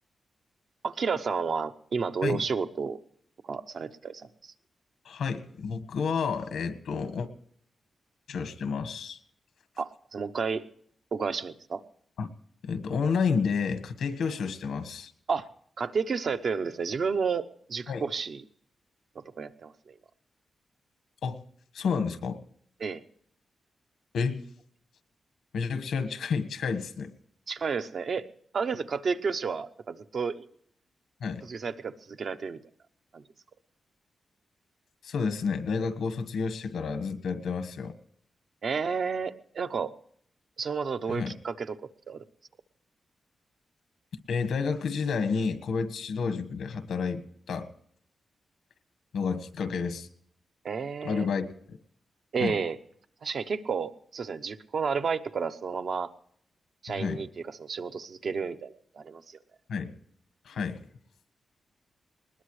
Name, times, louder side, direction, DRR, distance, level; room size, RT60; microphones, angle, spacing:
voice 1, 0.8-3.0 3.5-4.5 9.8-10.6 11.1-11.8 15.3-15.5 15.8-18.4 19.4-19.7 22.8-23.0 27.5-28.2 28.5-30.5 31.5-32.6 33.1-33.2 38.6-39.9 40.6-41.8 42.1-42.2 50.6-51.3 52.3-52.8 53.2-56.1 56.8-57.3 57.6-59.4, right 5 dB, 50° right, 9 dB, 0.8 m, -31 dB
voice 2, 5.0-7.3 8.3-9.2 12.2-12.3 12.6-15.1 17.9-18.0 21.2-21.4 21.7-22.4 24.1-24.4 25.5-27.1 31.2-31.4 35.0-38.0 41.1-41.3 44.3-47.7 49.1-50.1 51.0-51.8 52.4-52.5 56.9-57.2 59.7-59.9 60.4-60.8, left 5 dB, 90° left, 10 dB, 1.4 m, -30 dB
20.5 x 20.0 x 3.2 m, 0.65 s
wide cardioid pair, 165°, 0 cm